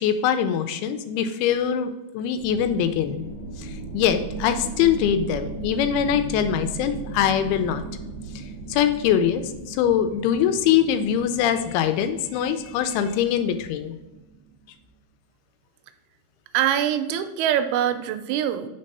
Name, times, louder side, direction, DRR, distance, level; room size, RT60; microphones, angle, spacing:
voice 1, 0.0-3.3 3.9-7.8 8.7-14.0, left 9 dB, 85° left, 9 dB, 2.5 m, -23 dB
sound 1, 2.4-14.6, right 4 dB, 55° right, 1.4 m, -37 dB
voice 2, 16.5-18.7, right 10 dB, 85° right, 8 dB, 2.5 m, -23 dB
5.3 x 4.1 x 5.3 m, 1.0 s
omnidirectional pair, 4.5 m